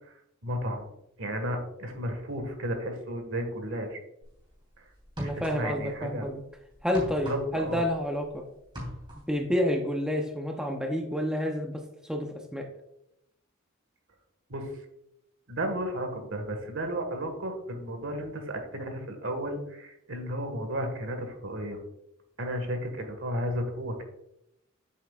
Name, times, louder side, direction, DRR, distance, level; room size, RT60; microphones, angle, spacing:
voice 1, 0.4-0.9 1.2-4.0 4.8-4.9 5.2-6.3 7.2-7.8 14.5-14.7 15.5-21.8 22.4-24.0, equal, 65° right, 5 dB, 1.7 m, -33 dB
sound 1, 4.2-4.4 5.0-5.9 6.2-8.3 8.6-9.4, equal, 25° right, 3.1 m, -40 dB
voice 2, 5.2-6.4 6.8-8.4 9.3-12.7, equal, 5° right, 2 dB, 0.7 m, -29 dB
8.9 x 7.5 x 2.4 m, 0.81 s
head